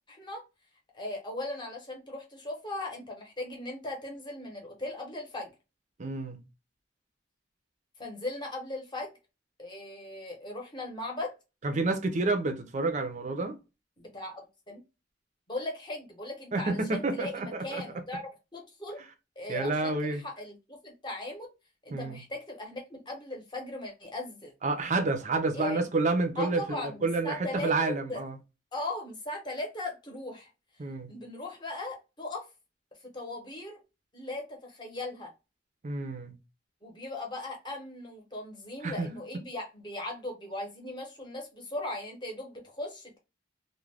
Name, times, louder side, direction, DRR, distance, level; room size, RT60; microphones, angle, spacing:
voice 1, 0.1-0.4 0.9-5.5 8.0-9.1 9.6-11.3 14.0-14.4 14.7-14.8 15.5-19.0 19.4-21.5 21.8-24.5 25.5-25.8 26.4-28.2 28.7-30.5 31.1-32.5 33.1-33.8 34.1-35.3 36.8-43.2, left 2 dB, 25° left, 0.8 m, -38 dB
voice 2, 6.0-6.4 11.6-13.6 16.5-17.8 19.5-20.2 21.9-22.2 24.6-28.4 30.8-31.1 35.8-36.3 38.8-39.1, right 3 dB, 40° right, 0.5 m, -29 dB
2.4 x 2.2 x 3.2 m
head